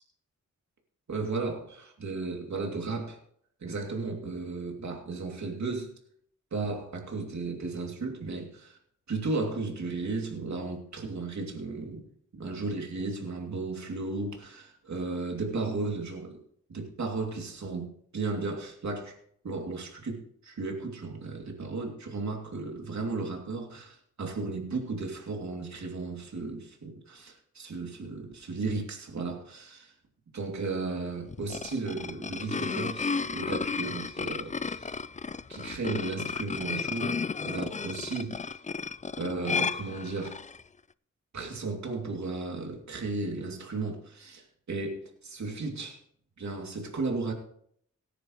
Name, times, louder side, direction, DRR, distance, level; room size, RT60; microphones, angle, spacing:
voice 1, 1.1-3.2 3.6-5.9 6.5-8.8 9.1-12.1 12.3-16.4 16.7-19.2 19.4-29.9 30.3-35.0 35.5-38.5 39.2-40.4 41.3-46.0 46.4-47.3, right 3 dB, 70° right, 2.8 m, -35 dB
sound 1, 31.3-40.6, left 5 dB, 25° left, 0.5 m, -33 dB
17.5 x 10.0 x 3.1 m
cardioid pair, 50°, 30 cm